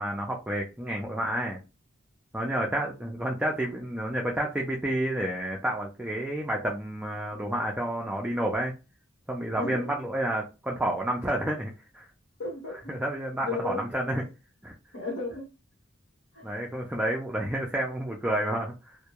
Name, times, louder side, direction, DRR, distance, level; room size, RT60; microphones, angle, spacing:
voice 1, 0.0-1.6 2.3-8.7 9.3-12.1 12.9-14.2 14.6-14.7 16.4-19.0, right 1 dB, 5° right, -1 dB, 0.3 m, -30 dB
voice 2, 9.6-9.9 12.4-13.0 13.4-13.8 14.9-15.5 16.3-16.5, left 2 dB, 90° left, -4 dB, 1.0 m, -34 dB
2.1 x 2.1 x 2.8 m, 0.29 s
head